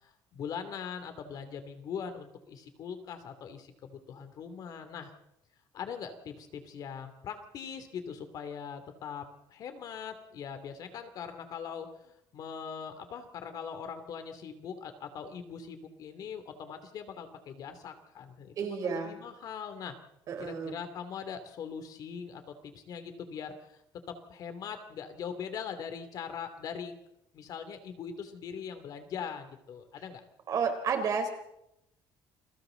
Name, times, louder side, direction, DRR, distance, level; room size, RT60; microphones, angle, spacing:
voice 1, 0.0-5.1 5.7-19.9 20.4-23.8 24.1-26.9 27.3-30.2, left 7 dB, 50° left, 8 dB, 2.9 m, -41 dB
voice 2, 18.6-19.1 20.3-20.8 30.5-31.3, right 6 dB, 45° right, 6 dB, 3.9 m, -31 dB
29.0 x 22.5 x 4.0 m, 0.82 s
cardioid pair, 155°, 8 cm